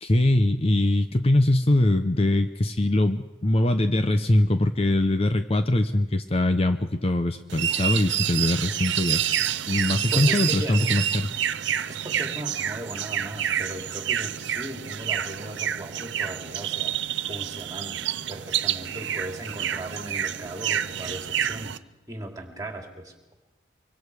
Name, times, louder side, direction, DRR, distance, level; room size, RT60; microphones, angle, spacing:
voice 1, 0.0-11.3, left 1 dB, 30° left, 8 dB, 0.7 m, -22 dB
sound 1, 7.5-21.8, right 10 dB, 70° right, 0.6 m, -28 dB
voice 2, 10.1-10.9 11.8-17.0 17.3-21.8 22.1-23.1, right 1 dB, 20° right, 2 dB, 3.1 m, -37 dB
24.5 x 24.0 x 4.9 m, 1.1 s
head